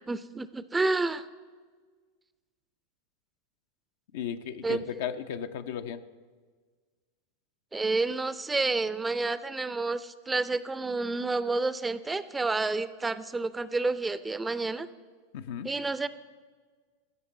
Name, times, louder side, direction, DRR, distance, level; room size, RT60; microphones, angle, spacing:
voice 1, 0.1-1.3 4.6-4.8 7.7-14.9 15.6-16.1, right 3 dB, 15° right, 15 dB, 0.5 m, -29 dB
voice 2, 4.1-6.0 15.3-15.7, left 8 dB, 60° left, 9 dB, 0.6 m, -35 dB
13.5 x 6.6 x 7.7 m, 1.5 s
figure-of-eight pair, 90°, 0 cm